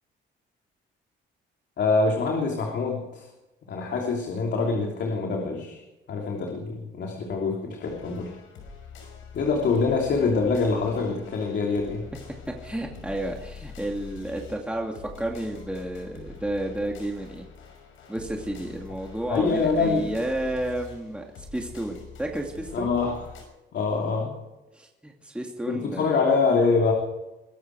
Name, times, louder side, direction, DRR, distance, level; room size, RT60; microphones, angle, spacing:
voice 1, 1.8-3.3 3.7-5.8 6.1-8.3 9.3-12.1 19.3-20.1 22.7-23.3 23.7-24.4 25.7-26.9, left 4 dB, 65° left, 0 dB, 3.1 m, -25 dB
sound 1, 7.8-23.4, left 6 dB, 85° left, 5.8 m, -45 dB
voice 2, 12.5-17.5 18.1-22.9 24.7-26.2, right 1 dB, 5° right, 0 dB, 2.4 m, -31 dB
23.0 x 12.5 x 4.8 m, 1.0 s
cardioid pair, 90°, 20 cm